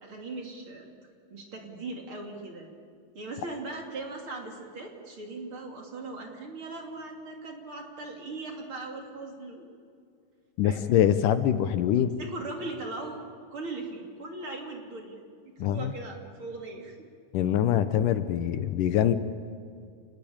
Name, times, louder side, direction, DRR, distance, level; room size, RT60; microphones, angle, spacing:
voice 1, 0.0-0.9 1.3-2.7 3.1-9.6 10.6-10.9 12.0-13.2 13.5-16.9, right 2 dB, 40° right, 1 dB, 3.3 m, -39 dB
voice 2, 10.6-12.1 15.6-15.9 17.3-19.1, left 10 dB, 75° left, 11 dB, 2.4 m, -24 dB
27.5 x 20.5 x 8.8 m, 2.3 s
omnidirectional pair, 3.9 m